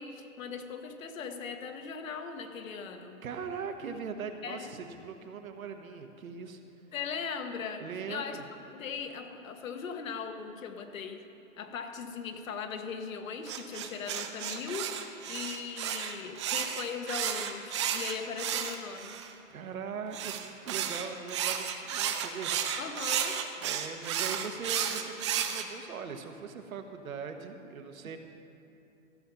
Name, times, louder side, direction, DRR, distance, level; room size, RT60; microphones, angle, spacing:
voice 1, 0.0-3.2 4.4-4.7 6.9-8.4 8.7-11.3 11.6-19.2 22.7-23.4, left 6 dB, 75° left, 5 dB, 1.4 m, -39 dB
voice 2, 3.2-6.6 7.8-8.5 19.5-22.8 23.6-28.2, right 6 dB, 90° right, 6 dB, 1.3 m, -40 dB
sound 1, 13.5-19.3 20.1-25.6, right 9 dB, 25° right, 0.4 m, -33 dB
14.5 x 5.7 x 7.0 m, 3.0 s
hypercardioid pair, 145°, 40 cm